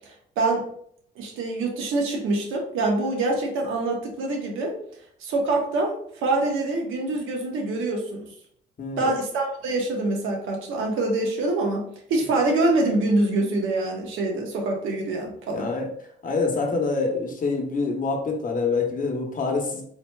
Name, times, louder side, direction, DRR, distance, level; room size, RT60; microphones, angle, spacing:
voice 1, 1.2-4.8 5.2-8.2 9.0-11.8 12.1-15.7, right 2 dB, 85° right, 1 dB, 0.9 m, -25 dB
voice 2, 8.8-9.1 15.5-15.9 16.2-19.8, left 4 dB, 45° left, 2 dB, 0.9 m, -26 dB
4.1 x 2.8 x 2.2 m, 0.65 s
cardioid pair, 90°, 20 cm